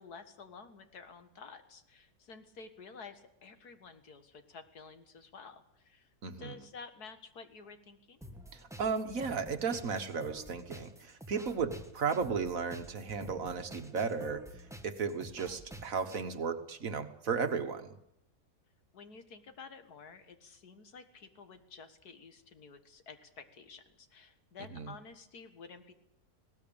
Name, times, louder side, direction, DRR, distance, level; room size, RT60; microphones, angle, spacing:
voice 1, 0.0-8.2 18.9-25.9, left 5 dB, 85° left, 8 dB, 2.2 m, -51 dB
voice 2, 6.2-6.6 8.5-14.4 14.8-17.9 24.7-24.9, right 5 dB, 60° right, 8 dB, 1.8 m, -35 dB
sound 1, 8.2-16.2, equal, ahead, 1.5 m, -50 dB
20.0 x 18.0 x 8.8 m, 0.77 s
omnidirectional pair, 1.6 m